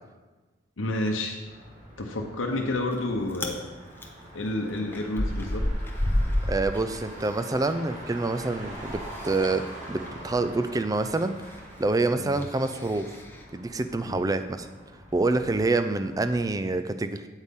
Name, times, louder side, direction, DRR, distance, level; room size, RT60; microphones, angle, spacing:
voice 1, 0.8-1.4 2.0-3.7 4.3-5.6 12.2-12.3 14.0-14.2, left 1 dB, 85° left, 2 dB, 0.8 m, -30 dB
Motor vehicle (road), 1.4-16.4, right 1 dB, 40° right, 1.6 m, -45 dB
Chewing mastication, 2.5-3.0 3.3-3.6 4.0-7.7 8.0-13.4, left 1 dB, 10° left, 0.8 m, -32 dB
voice 2, 6.5-11.4 11.8-13.1 13.5-14.7 15.1-17.3, right 2 dB, 20° right, 10 dB, 0.4 m, -27 dB
8.2 x 8.1 x 3.6 m, 1.2 s
head